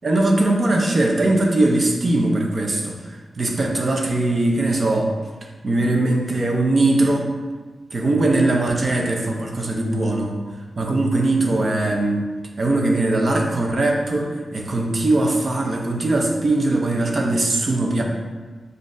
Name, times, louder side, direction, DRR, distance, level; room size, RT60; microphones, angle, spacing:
voice 1, 0.0-5.1 5.6-7.3 7.9-10.4 10.8-12.2 12.6-18.0, right 2 dB, 45° right, 1 dB, 0.6 m, -20 dB
7.1 x 2.6 x 2.6 m, 1.4 s
wide cardioid pair, 110°, 0 cm